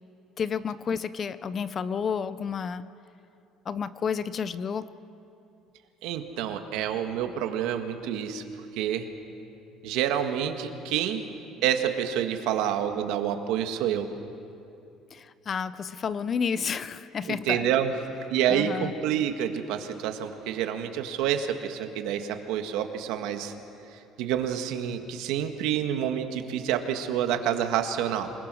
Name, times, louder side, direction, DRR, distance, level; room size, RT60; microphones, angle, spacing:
voice 1, 0.4-2.9 3.7-4.9 15.1-17.7 18.5-18.9, left 6 dB, 30° left, 15 dB, 0.5 m, -31 dB
voice 2, 6.0-8.4 8.7-9.1 9.8-11.2 11.6-14.1 17.3-17.9 18.3-23.5 23.9-28.3, right 9 dB, 80° right, 6 dB, 1.7 m, -28 dB
27.5 x 20.5 x 6.3 m, 2.7 s
cardioid pair, 160°, 0 cm